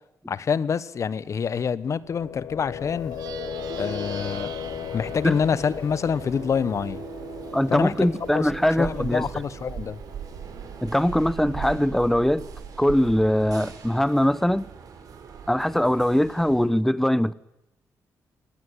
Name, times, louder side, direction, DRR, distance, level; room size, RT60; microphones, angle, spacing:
voice 1, 0.3-3.1 3.8-4.6 4.9-7.0 7.7-8.5 8.8-10.0, left 6 dB, 50° left, 1.1 m, -26 dB
sound 1, 2.0-11.8, left 10 dB, 75° left, 1.0 m, -38 dB
Plucked string instrument, 3.0-12.7, right 9 dB, 85° right, 1.7 m, -43 dB
sound 2, 4.6-16.6, right 7 dB, 70° right, 5.7 m, -40 dB
voice 2, 7.5-9.3 10.8-12.5 12.8-14.7 15.5-17.3, left 1 dB, 5° left, 0.9 m, -22 dB
24.0 x 18.5 x 9.8 m
cardioid pair, 100°, 6 cm